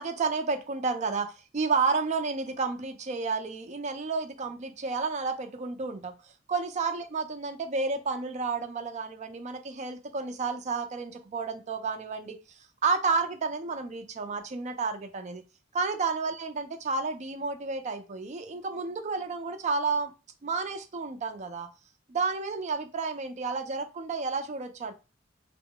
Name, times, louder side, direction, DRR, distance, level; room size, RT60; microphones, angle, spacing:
voice 1, 0.0-6.1 6.5-12.4 12.8-15.4 15.7-20.1 20.4-21.7 22.1-24.9, right 4 dB, 40° right, 0.4 m, -31 dB
2.1 x 2.0 x 3.7 m
head